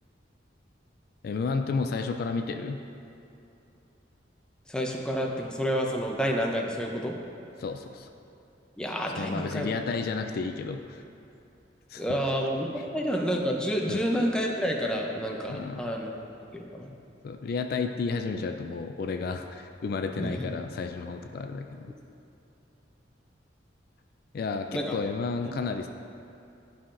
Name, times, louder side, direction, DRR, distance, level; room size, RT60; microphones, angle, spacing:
voice 1, 1.2-2.8 7.6-8.1 9.1-11.0 11.9-12.1 13.9-14.0 15.5-15.9 17.2-21.9 24.3-25.9, left 4 dB, 55° left, 5 dB, 0.3 m, -32 dB
voice 2, 4.7-7.2 8.8-9.7 12.0-16.1 16.5-16.9 20.2-20.4 24.7-25.0, equal, 5° left, 0 dB, 0.5 m, -29 dB
11.0 x 5.6 x 2.5 m, 2.8 s
head